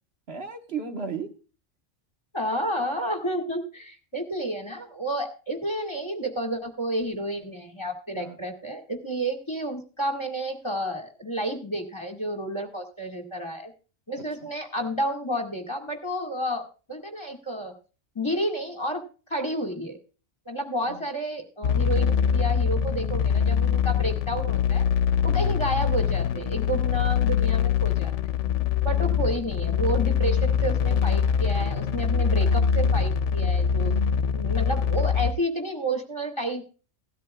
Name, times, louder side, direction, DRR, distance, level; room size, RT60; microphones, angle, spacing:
voice 1, 0.3-1.3 8.1-8.4 14.4-14.5 20.9-21.0 28.9-29.4, right 5 dB, 55° right, 5 dB, 1.6 m, -35 dB
voice 2, 2.3-13.7 14.1-17.7 18.2-19.0 19.3-20.0 20.5-24.8 25.2-28.1 28.8-33.9 34.3-36.7, right 1 dB, 25° left, 6 dB, 2.0 m, -30 dB
sound 1, 21.6-35.3, left 7 dB, 75° left, 1.0 m, -23 dB
17.0 x 13.0 x 2.3 m, 0.36 s
omnidirectional pair, 1.2 m